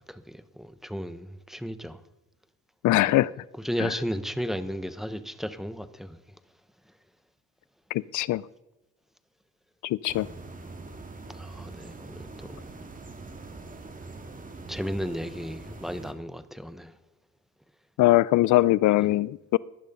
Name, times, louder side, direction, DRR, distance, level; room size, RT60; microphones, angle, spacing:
voice 1, 0.0-2.0 3.1-3.2 3.6-6.2 11.4-12.6 14.7-16.9 19.0-19.1, equal, ahead, 1.1 m, -34 dB
voice 2, 2.8-3.3 3.8-3.9 7.9-8.4 9.8-10.3 18.0-19.6, left 16 dB, 75° left, 0.5 m, -22 dB
sound 1, 10.1-16.1, right 3 dB, 25° right, 2.2 m, -43 dB
18.0 x 11.5 x 5.4 m
cardioid pair, 90°, 30 cm